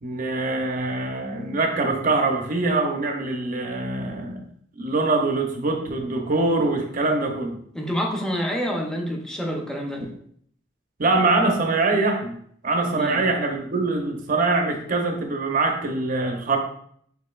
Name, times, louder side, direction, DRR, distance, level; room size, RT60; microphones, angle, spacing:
voice 1, 0.0-4.5 4.8-7.5 11.0-12.3 12.6-16.6, right 3 dB, 45° right, 3 dB, 0.6 m, -23 dB
voice 2, 7.7-10.1 12.9-13.2, equal, 5° left, 0 dB, 0.6 m, -27 dB
6.6 x 2.7 x 2.4 m, 0.65 s
head